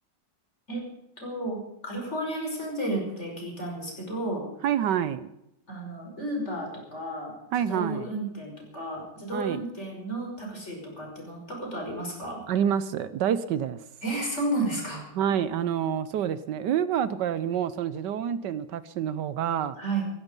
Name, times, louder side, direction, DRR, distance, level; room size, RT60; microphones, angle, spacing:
voice 1, 1.2-4.4 5.7-7.3 7.7-12.4 14.0-15.0 19.8-20.0, right 1 dB, 35° left, 0 dB, 6.0 m, -32 dB
voice 2, 4.6-5.3 7.5-8.1 9.3-9.6 12.5-13.8 15.2-19.8, right 9 dB, 75° right, 14 dB, 1.3 m, -27 dB
16.0 x 15.5 x 5.3 m, 0.85 s
omnidirectional pair, 1.9 m